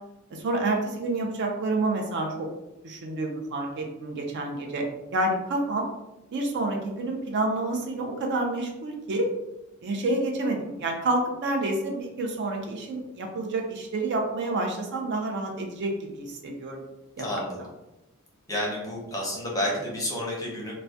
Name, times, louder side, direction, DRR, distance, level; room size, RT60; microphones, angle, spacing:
voice 1, 0.3-2.5 2.8-4.9 5.1-5.9 6.3-9.3 9.8-16.8 17.2-17.7, right 2 dB, 55° right, 2 dB, 0.4 m, -29 dB
voice 2, 17.2-17.6 18.5-20.8, left 1 dB, 15° left, -3 dB, 0.6 m, -30 dB
2.2 x 2.1 x 2.6 m, 0.94 s
head